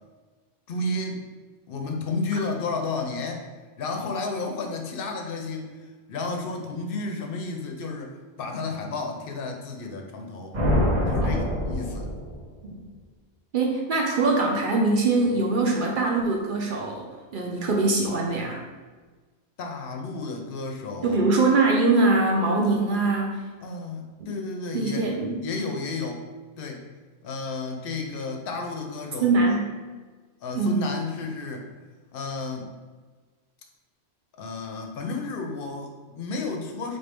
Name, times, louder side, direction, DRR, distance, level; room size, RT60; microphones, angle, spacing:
voice 1, 0.7-1.2 1.7-3.5 3.8-5.7 6.1-8.1 8.4-10.6 11.1-12.1 19.6-21.2 23.6-25.1 25.4-26.2 26.6-26.8 27.2-29.4 30.4-31.7 32.1-32.7 34.4-37.0, left 3 dB, 60° left, 3 dB, 0.7 m, -32 dB
sound 1, 10.5-12.7, left 1 dB, 35° right, 0.9 m, -25 dB
voice 2, 13.5-18.6 21.0-23.4 24.2-24.3 24.7-25.4 29.2-29.6 30.5-30.8, right 3 dB, 55° right, 0 dB, 0.6 m, -23 dB
3.9 x 2.6 x 3.4 m, 1.4 s
omnidirectional pair, 1.2 m